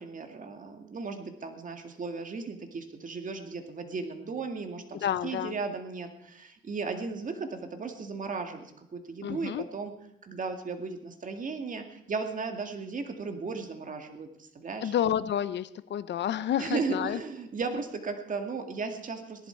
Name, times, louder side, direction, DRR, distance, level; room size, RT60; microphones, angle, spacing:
voice 1, 0.0-9.9 10.2-14.9 16.6-19.5, right 4 dB, 40° right, 6 dB, 2.0 m, -36 dB
voice 2, 5.0-5.6 9.2-9.6 14.8-17.2, left 10 dB, 65° left, 15 dB, 0.8 m, -30 dB
18.5 x 11.0 x 4.6 m, 0.78 s
cardioid pair, 90°, 20 cm